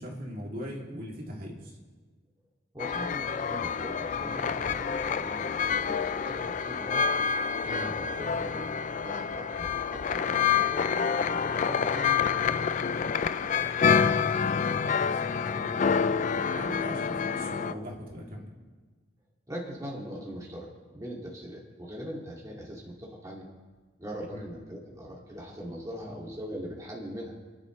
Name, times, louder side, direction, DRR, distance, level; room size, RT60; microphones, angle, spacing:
voice 1, 0.0-1.8 7.6-7.9 13.8-16.1 16.5-18.5 24.3-24.4, equal, 50° right, -2 dB, 2.8 m, -40 dB
voice 2, 2.7-7.1 7.6-8.7 9.0-12.7 19.5-20.7 20.9-23.5 24.0-27.3, equal, 20° right, -4 dB, 2.3 m, -41 dB
sound 1, 2.8-17.7, left 6 dB, 40° left, 0.4 m, -28 dB
29.0 x 11.5 x 3.2 m, 1.4 s
head